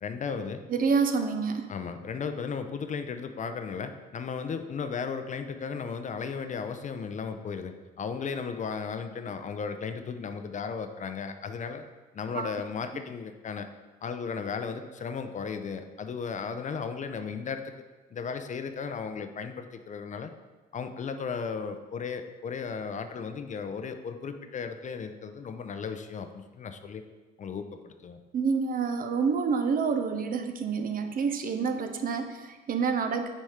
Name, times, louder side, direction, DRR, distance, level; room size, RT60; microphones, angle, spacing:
voice 1, 0.0-0.6 1.7-11.8 12.1-13.7 14.0-17.7 18.1-20.3 20.7-27.0 27.4-28.2, left 5 dB, 40° left, 8 dB, 0.6 m, -35 dB
voice 2, 0.7-1.7 12.3-12.5 28.3-33.3, right 5 dB, 45° right, 7 dB, 0.7 m, -28 dB
6.4 x 4.2 x 4.9 m, 1.2 s
supercardioid pair, 80°, 19 cm